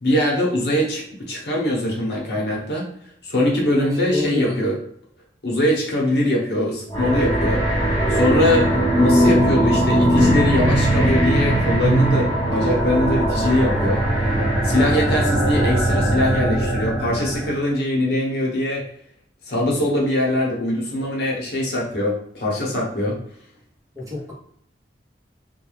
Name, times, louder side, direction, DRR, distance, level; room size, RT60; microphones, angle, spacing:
voice 1, 0.0-2.9 3.2-4.8 5.4-7.6 8.1-8.7 9.0-14.0 14.6-18.8 19.5-23.2, left 1 dB, 70° left, -3 dB, 0.8 m, -22 dB
voice 2, 3.8-4.6 8.5-8.8 14.8-15.2 23.9-24.3, left 2 dB, 20° right, -4 dB, 0.7 m, -29 dB
sound 1, 6.9-17.5, right 1 dB, 20° left, 0.8 m, -19 dB
2.3 x 2.2 x 3.0 m, 0.67 s
head